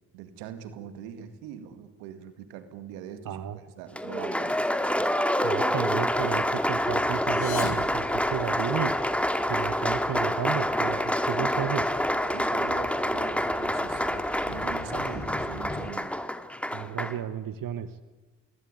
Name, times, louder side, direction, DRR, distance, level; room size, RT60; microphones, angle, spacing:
voice 1, 0.1-4.6 12.3-16.1, right 9 dB, 90° right, 10 dB, 2.2 m, -42 dB
voice 2, 3.2-3.6 5.4-8.9 9.5-11.9 13.9-14.0 16.7-18.0, right 9 dB, 60° right, 12 dB, 1.5 m, -33 dB
Applause, 3.9-17.2, equal, 5° left, 2.5 m, -27 dB
Thunder, 5.9-15.9, left 3 dB, 25° left, 4.5 m, -44 dB
sound 1, 7.1-9.0, left 9 dB, 80° left, 2.4 m, -40 dB
26.5 x 21.5 x 9.7 m, 1.3 s
hypercardioid pair, 45°, 37 cm